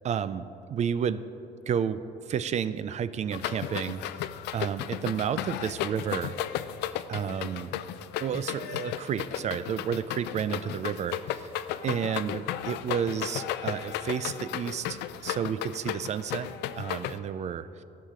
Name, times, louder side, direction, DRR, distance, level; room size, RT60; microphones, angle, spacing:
voice 1, 0.0-1.3 1.7-4.0 4.5-6.4 7.1-7.7 8.2-11.5 11.8-16.5 16.8-17.8, right 8 dB, 40° right, 14 dB, 0.4 m, -31 dB
sound 1, 3.3-17.2, left 12 dB, 85° left, 0.4 m, -34 dB
14.5 x 5.7 x 5.0 m, 2.6 s
cardioid pair, 110°, 17 cm